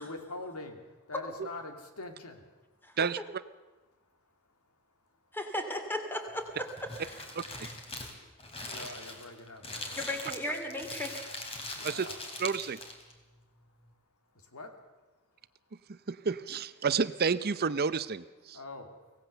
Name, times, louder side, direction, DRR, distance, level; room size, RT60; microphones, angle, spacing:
voice 1, 0.0-3.0 3.9-5.4 7.9-10.0 11.6-12.4 13.1-16.1 18.5-19.3, left 2 dB, 85° left, 5 dB, 2.8 m, -47 dB
voice 2, 5.3-6.7 7.0-7.1 7.6-7.7 10.0-11.2, left 1 dB, 10° left, 5 dB, 2.6 m, -35 dB
Crumpling crinkling, 6.3-13.1, left 2 dB, 25° left, 3.0 m, -42 dB
voice 3, 7.4-7.7 11.8-12.1 12.4-12.8 15.9-18.6, right 5 dB, 45° right, 15 dB, 0.6 m, -30 dB
24.5 x 17.5 x 6.8 m, 1.2 s
head